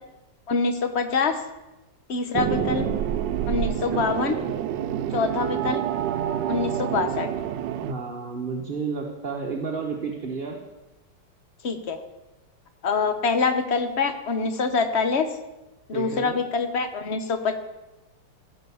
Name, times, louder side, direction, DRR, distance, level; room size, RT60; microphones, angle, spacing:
voice 1, 0.5-1.4 2.1-2.8 3.5-4.4 5.1-5.8 6.5-7.3 11.6-12.0 12.8-15.3 15.9-17.5, left 4 dB, 45° left, 8 dB, 1.0 m, -25 dB
sound 1, 2.3-7.9, right 10 dB, 75° right, 1.2 m, -27 dB
voice 2, 2.5-2.9 7.8-10.6 15.9-16.4, right 4 dB, 35° right, -1 dB, 1.1 m, -31 dB
15.5 x 5.8 x 7.0 m, 1.0 s
omnidirectional pair, 2.0 m